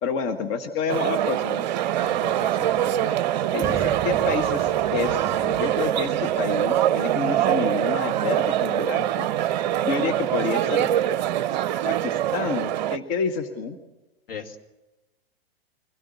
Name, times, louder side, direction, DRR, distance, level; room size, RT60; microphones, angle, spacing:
voice 1, 0.0-1.7 3.5-9.3 9.8-10.9 11.8-13.8, left 5 dB, 35° left, 7 dB, 1.5 m, -29 dB
sound 1, 0.9-13.0, right 12 dB, 45° right, 0.7 m, -24 dB
voice 2, 2.0-3.3 14.3-14.6, left 6 dB, 65° left, 4 dB, 2.4 m, -39 dB
sound 2, 3.6-7.3, right 6 dB, 10° right, 3.6 m, -37 dB
24.0 x 17.0 x 8.2 m, 1.1 s
figure-of-eight pair, 105°, 31 cm